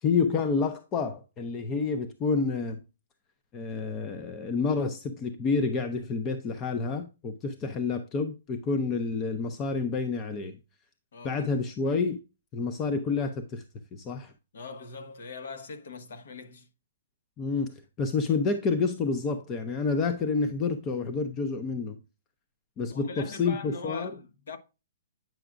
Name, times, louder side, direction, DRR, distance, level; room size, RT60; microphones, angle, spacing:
voice 1, 0.0-2.8 3.5-10.6 11.2-12.2 12.5-13.6 13.9-14.3 17.4-17.7 18.0-22.0 22.8-24.1, left 4 dB, 20° left, 0.5 m, -29 dB
voice 2, 11.1-11.5 14.5-16.7 22.9-24.6, left 4 dB, 70° left, 1.1 m, -41 dB
9.0 x 5.9 x 2.5 m
hypercardioid pair, 165°, 0 cm